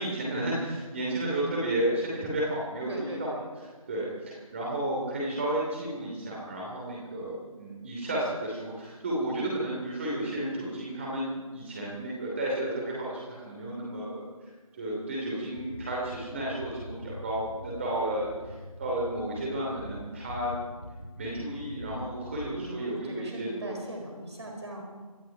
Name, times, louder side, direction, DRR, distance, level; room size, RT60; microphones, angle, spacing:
voice 1, 0.0-3.3 3.9-20.6 21.2-23.7 24.4-24.6, right 1 dB, 20° right, -4 dB, 2.9 m, -32 dB
voice 2, 2.9-3.4 22.5-24.8, right 1 dB, 50° right, 1 dB, 4.6 m, -40 dB
sound 1, 15.5-22.6, equal, 85° left, 4.0 m, -44 dB
25.5 x 11.5 x 4.9 m, 1.4 s
figure-of-eight pair, 160°, 19 cm